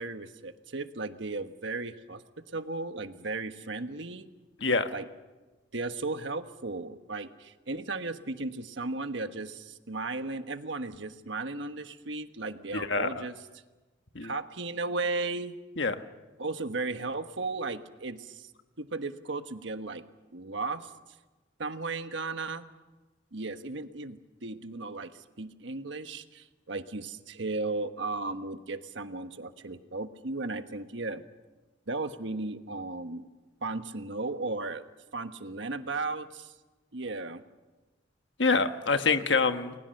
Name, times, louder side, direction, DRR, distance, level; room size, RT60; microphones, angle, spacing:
voice 1, 0.0-2.2 2.5-4.3 4.9-5.1 5.7-13.3 14.2-15.5 16.4-18.5 18.8-20.0 20.3-20.9 21.6-22.6 23.3-31.2 31.9-33.3 33.6-34.8 35.1-36.5 36.9-37.4, right 3 dB, 70° right, 8 dB, 1.4 m, -35 dB
voice 2, 12.7-13.2 14.1-14.3 15.8-16.0 38.4-39.7, left 4 dB, 65° left, 8 dB, 1.4 m, -26 dB
29.5 x 21.5 x 6.6 m, 1.2 s
head